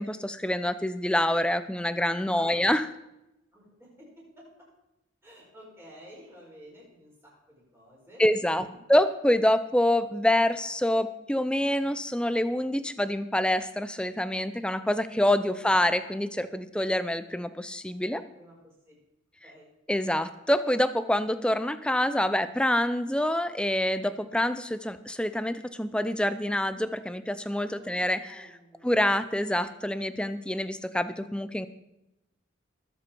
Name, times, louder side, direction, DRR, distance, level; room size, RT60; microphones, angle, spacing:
voice 1, 0.0-2.9 8.2-18.2 19.9-28.4 28.8-31.7, left 1 dB, 5° left, 12 dB, 0.5 m, -26 dB
voice 2, 3.5-4.7 5.2-8.8 15.5-15.6 18.3-18.9 19.4-19.7 27.8-28.9, equal, 15° right, -5 dB, 5.3 m, -52 dB
20.5 x 7.8 x 4.6 m, 0.91 s
head